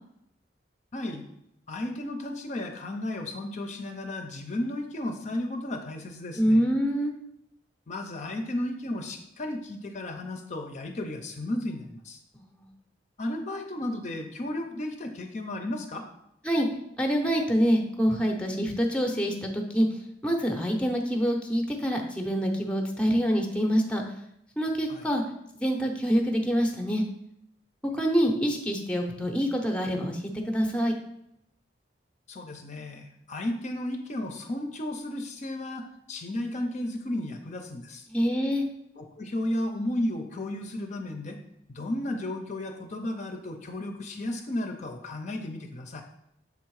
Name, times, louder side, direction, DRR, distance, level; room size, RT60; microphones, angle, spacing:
voice 1, 0.9-1.3 1.7-6.6 7.9-12.2 13.2-16.1 24.9-25.0 32.3-38.1 38.9-41.4 41.7-46.0, left 1 dB, 40° left, 4 dB, 0.6 m, -34 dB
voice 2, 6.4-7.1 12.3-12.7 16.4-16.7 17.0-19.9 20.2-24.0 24.6-25.2 25.5-27.0 27.9-30.9 38.1-38.6, equal, 5° left, 3 dB, 0.7 m, -26 dB
7.0 x 3.5 x 4.7 m, 0.78 s
head